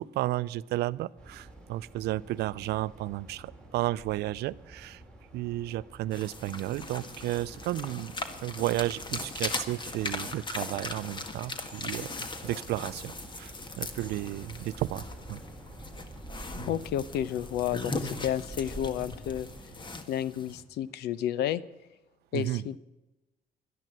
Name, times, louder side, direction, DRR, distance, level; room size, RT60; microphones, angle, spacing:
voice 1, 0.0-5.0 5.3-8.1 8.4-15.0 15.3-15.4 16.6-16.7 22.3-22.6, right 15 dB, 75° right, 18 dB, 0.6 m, -33 dB
sound 1, 1.2-20.0, right 1 dB, 5° left, 2.7 m, -49 dB
sound 2, 6.1-20.6, left 3 dB, 25° left, 1.7 m, -39 dB
voice 2, 16.7-19.5 20.1-21.6 22.3-22.8, left 10 dB, 75° left, 19 dB, 0.8 m, -31 dB
12.0 x 10.5 x 7.9 m, 1.0 s
cardioid pair, 110°, 17 cm